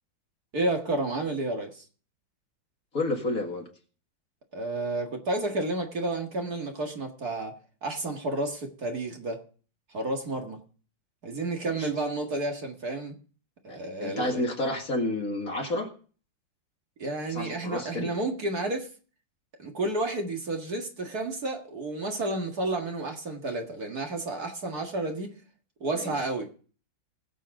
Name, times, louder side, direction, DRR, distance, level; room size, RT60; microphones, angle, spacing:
voice 1, 0.5-1.8 4.5-9.4 9.9-10.6 11.2-13.2 13.6-14.4 17.0-18.9 19.6-25.4 25.8-26.5, right 2 dB, 50° right, 2.3 m, -31 dB
voice 2, 2.9-3.7 11.7-11.8 13.7-15.9 17.3-18.1 25.9-26.1, left 2 dB, 45° left, 2.4 m, -30 dB
20.5 x 7.5 x 3.8 m
omnidirectional pair, 2.1 m